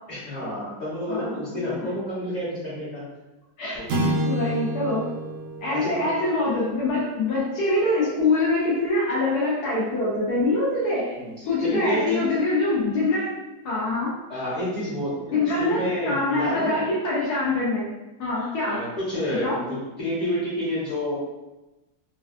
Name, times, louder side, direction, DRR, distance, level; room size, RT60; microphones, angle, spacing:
voice 1, 0.1-3.0 3.7-4.2 5.7-6.1 11.2-12.3 14.3-16.8 18.7-21.2, equal, 35° left, -12 dB, 0.7 m, -29 dB
voice 2, 1.1-1.6 3.6-3.8 4.3-5.1 5.6-11.2 11.4-13.3 13.6-14.1 15.3-17.9 18.2-18.9 19.4-19.6, left 2 dB, 70° left, -5 dB, 1.0 m, -24 dB
sound 1, 3.9-8.4, equal, 75° right, 1.1 m, -30 dB
3.4 x 2.2 x 2.4 m, 1.1 s
omnidirectional pair, 2.3 m